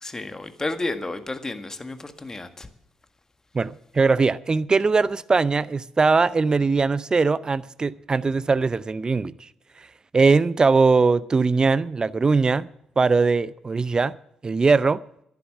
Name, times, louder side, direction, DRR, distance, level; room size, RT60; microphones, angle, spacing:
voice 1, 0.0-2.7, left 2 dB, 20° left, 1.7 m, -31 dB
voice 2, 3.5-9.3 10.1-12.7 13.0-14.1 14.4-15.0, right 4 dB, 30° right, 0.6 m, -20 dB
11.0 x 11.0 x 7.5 m
hypercardioid pair, 45°, 2 cm